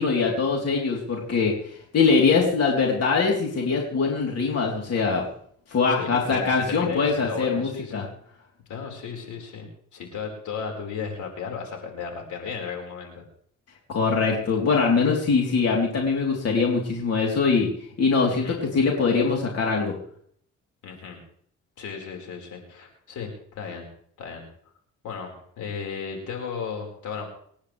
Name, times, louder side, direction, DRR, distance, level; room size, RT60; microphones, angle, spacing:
voice 1, 0.0-5.2 5.7-8.1 13.9-17.7 18.0-19.9, left 4 dB, 55° left, -1 dB, 3.6 m, -22 dB
voice 2, 6.0-8.1 8.7-13.2 18.3-18.6 20.8-21.2 21.8-23.9 24.2-24.5 25.0-27.2, left 6 dB, 75° left, 1 dB, 4.9 m, -35 dB
27.5 x 10.5 x 3.4 m, 0.62 s
cardioid pair, 90°, 30 cm